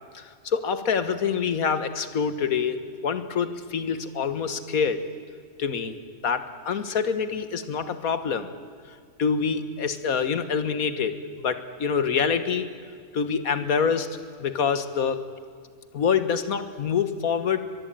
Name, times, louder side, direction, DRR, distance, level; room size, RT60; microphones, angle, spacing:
voice 1, 0.1-5.0 5.6-6.0 6.2-8.5 9.2-12.7 13.1-15.2 15.9-17.6, left 6 dB, 80° left, 11 dB, 1.9 m, -26 dB
23.0 x 22.0 x 9.1 m, 2.1 s
omnidirectional pair, 1.5 m